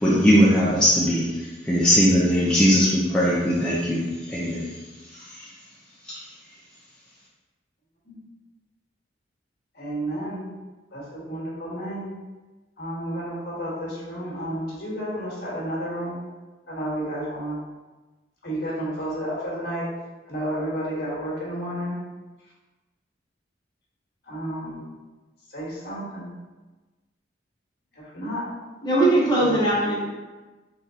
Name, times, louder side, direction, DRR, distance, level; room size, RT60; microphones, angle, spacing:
voice 1, 0.0-1.3 1.6-4.0 4.3-4.6, equal, 5° left, -8 dB, 0.5 m, -19 dB
voice 2, 9.7-10.4 10.9-12.1 12.8-16.2 16.7-17.6 18.4-19.9 20.3-21.9 24.2-24.8 25.5-26.3 27.9-28.4 29.4-29.6, right 1 dB, 60° left, -6 dB, 1.4 m, -31 dB
voice 3, 28.8-30.0, right 1 dB, 25° left, -7 dB, 0.9 m, -20 dB
3.7 x 3.2 x 2.8 m, 1.2 s
head